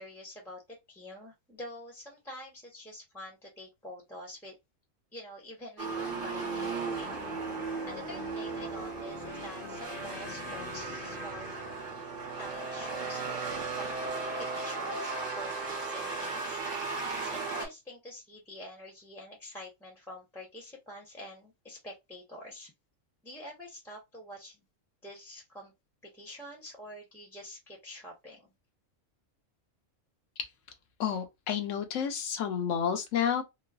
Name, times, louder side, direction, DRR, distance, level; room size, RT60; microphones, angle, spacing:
voice 1, 0.0-4.6 5.1-7.2 7.9-11.6 12.4-14.0 14.4-16.6 17.1-22.7 23.2-24.6 25.0-25.7 26.0-28.5, left 1 dB, ahead, 0.6 m, -46 dB
sound 1, 5.8-13.5, left 4 dB, 40° left, 0.7 m, -46 dB
sound 2, 5.8-17.7, right 4 dB, 45° right, 1.0 m, -36 dB
voice 2, 31.0-33.4, left 8 dB, 75° left, 1.0 m, -30 dB
3.0 x 2.0 x 2.3 m
omnidirectional pair, 1.3 m